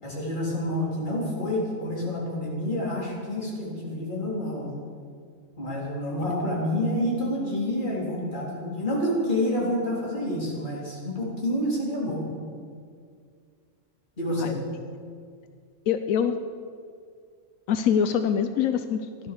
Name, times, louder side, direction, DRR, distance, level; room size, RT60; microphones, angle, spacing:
voice 1, 0.0-4.8 5.6-12.3 14.2-14.6, left 1 dB, 35° left, -4 dB, 3.8 m, -28 dB
voice 2, 15.9-16.3 17.7-19.3, left 8 dB, 90° left, 8 dB, 1.1 m, -24 dB
15.0 x 12.0 x 6.8 m, 2.2 s
omnidirectional pair, 1.4 m